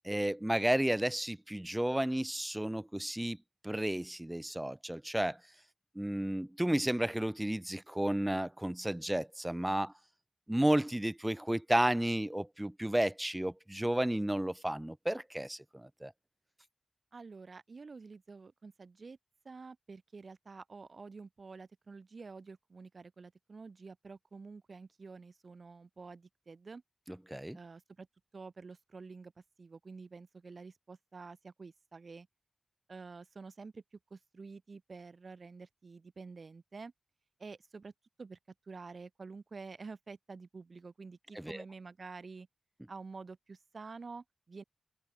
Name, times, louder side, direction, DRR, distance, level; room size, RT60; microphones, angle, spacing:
voice 1, 0.0-3.4 3.6-5.4 5.9-9.9 10.5-16.1 27.1-27.6 41.3-41.6, right 1 dB, 10° right, 0.9 m, -32 dB
voice 2, 17.1-19.2 19.4-26.8 27.5-28.1 28.3-29.3 29.6-32.3 32.9-36.9 37.4-37.9 38.2-38.4 38.7-42.5 42.9-44.6, right 4 dB, 60° right, 7.3 m, -49 dB
open air
cardioid pair, 55°, 0 cm